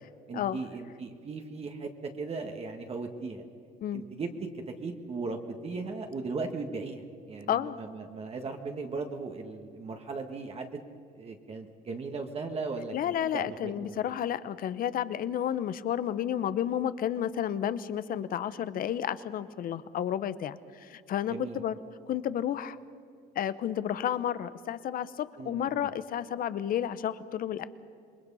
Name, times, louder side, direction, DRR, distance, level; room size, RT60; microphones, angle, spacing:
voice 1, 0.3-3.4 3.9-4.3 4.7-10.8 11.1-14.1 21.2-21.6 25.4-25.9, right 4 dB, 35° right, 4 dB, 1.7 m, -37 dB
voice 2, 12.9-21.8 22.1-22.8 23.3-27.7, left 10 dB, 60° left, 14 dB, 1.0 m, -31 dB
27.0 x 21.5 x 5.6 m, 2.5 s
cardioid pair, 110°, 17 cm